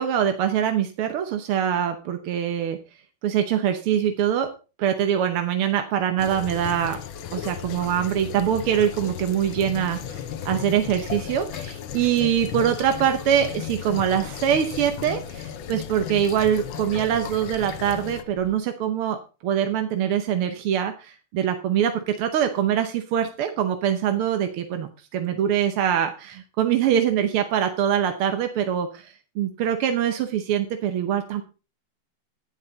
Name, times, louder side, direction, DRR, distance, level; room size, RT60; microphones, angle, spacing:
voice 1, 0.0-2.8 3.2-4.5 4.8-7.0 7.3-19.2 19.4-31.4, right 9 dB, 90° right, 7 dB, 1.9 m, -24 dB
sound 1, 6.2-18.2, left 10 dB, 70° left, 1.6 m, -35 dB
sound 2, 7.1-18.6, left 3 dB, 85° left, 2.8 m, -46 dB
11.0 x 9.8 x 3.9 m, 0.33 s
omnidirectional pair, 2.3 m